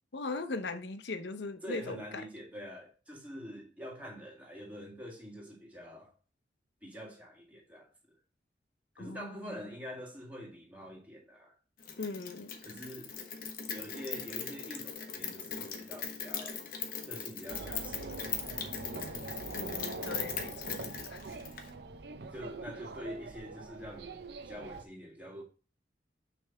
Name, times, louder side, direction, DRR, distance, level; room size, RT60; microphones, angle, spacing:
voice 1, 0.1-2.2 9.0-9.7 12.0-12.6 19.5-21.2, left 3 dB, 75° left, 0.8 m, -40 dB
voice 2, 1.6-6.1 6.8-7.9 9.0-11.5 12.6-13.1 13.7-16.6 17.0-18.4 22.3-25.4, equal, 10° right, 1.9 m, -45 dB
Rain, 11.8-21.7, left 7 dB, 50° left, 1.1 m, -40 dB
sound 1, 17.5-24.8, right 3 dB, 65° right, 0.6 m, -43 dB
6.3 x 3.4 x 5.7 m
head